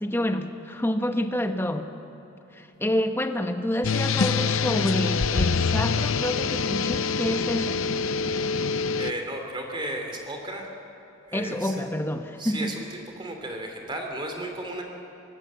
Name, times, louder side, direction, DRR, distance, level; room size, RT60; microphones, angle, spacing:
voice 1, 0.0-1.9 2.5-7.8 11.3-12.7, left 1 dB, 10° left, 6 dB, 1.1 m, -28 dB
sound 1, 3.8-9.1, left 5 dB, 80° left, 0.6 m, -25 dB
voice 2, 9.0-10.7 11.3-11.8 12.4-14.8, right 1 dB, 25° right, 3 dB, 2.8 m, -34 dB
24.0 x 19.5 x 7.4 m, 2.9 s
head